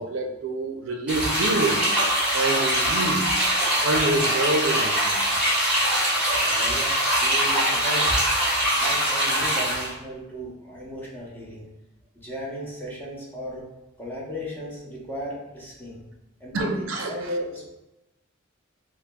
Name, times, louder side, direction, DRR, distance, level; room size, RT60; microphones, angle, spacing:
voice 1, 0.0-1.9 2.3-3.3 3.7-5.3 16.5-17.3, right 2 dB, 70° right, 4 dB, 0.4 m, -27 dB
sound 1, 1.1-9.9, right 1 dB, 5° right, 1.3 m, -23 dB
voice 2, 6.4-8.2 8.7-11.7 12.1-13.6 14.0-16.0 16.4-17.7, equal, 10° left, -5 dB, 0.7 m, -35 dB
5.9 x 2.0 x 2.2 m, 0.97 s
head